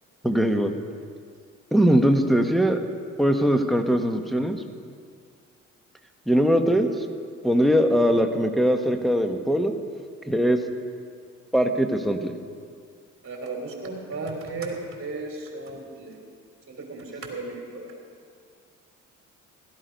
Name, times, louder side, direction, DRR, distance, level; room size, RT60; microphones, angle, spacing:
voice 1, 0.2-0.7 1.7-2.8 3.2-4.6 6.3-6.9 7.4-9.7 10.3-10.6 11.5-12.3, equal, ahead, 4 dB, 1.2 m, -21 dB
voice 2, 13.2-16.2 16.7-17.9, right 3 dB, 45° right, 1 dB, 3.7 m, -35 dB
16.5 x 13.0 x 5.3 m, 2.1 s
cardioid pair, 90°, 30 cm